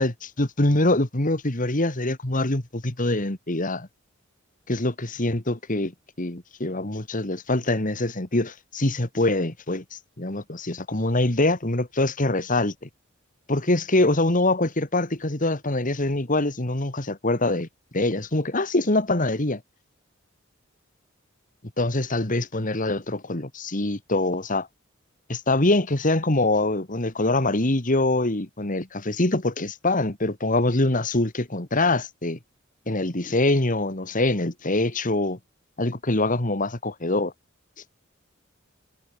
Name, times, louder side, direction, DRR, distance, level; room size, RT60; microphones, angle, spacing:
voice 1, 0.0-3.9 4.7-12.9 13.5-17.7 17.9-19.6 21.8-24.7 25.3-32.4 32.9-35.4 35.8-37.3, left 2 dB, 40° left, 2.3 m, -24 dB
head